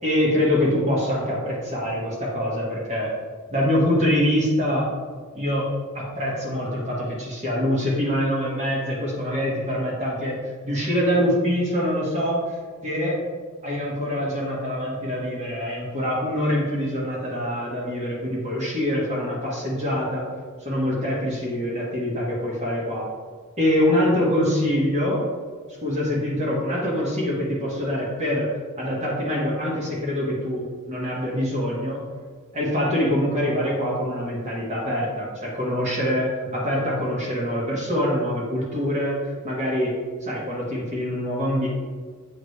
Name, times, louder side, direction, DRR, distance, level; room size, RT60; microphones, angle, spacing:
voice 1, 0.0-3.1 3.5-4.9 5.3-5.7 5.9-10.3 10.6-12.4 12.8-13.2 13.6-20.2 20.6-23.1 23.6-25.2 25.8-28.5 28.8-32.0 32.5-39.2 39.4-39.9 40.2-41.7, equal, 35° right, -5 dB, 1.5 m, -24 dB
8.0 x 3.9 x 3.2 m, 1.5 s
head